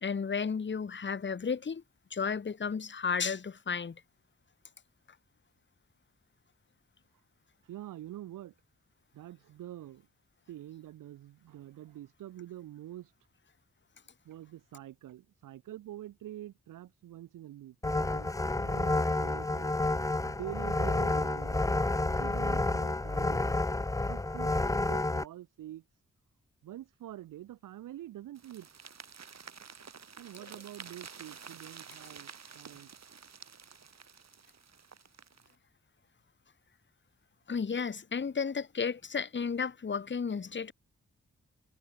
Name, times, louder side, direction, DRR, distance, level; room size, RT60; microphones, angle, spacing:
voice 1, 0.0-1.8 2.1-4.0 37.5-40.7, left 5 dB, 35° left, 1.0 m, -33 dB
voice 2, 7.6-8.5 9.1-10.1 10.5-13.1 14.2-19.8 20.3-21.6 22.2-23.6 24.1-24.5 24.8-25.8 26.6-28.7 30.2-32.9, right 13 dB, 85° right, 0.7 m, -46 dB
sound 1, 17.8-25.2, left 2 dB, 10° left, 0.6 m, -30 dB
sound 2, 28.4-35.5, right 6 dB, 55° right, 2.3 m, -50 dB
supercardioid pair, 40°, 31 cm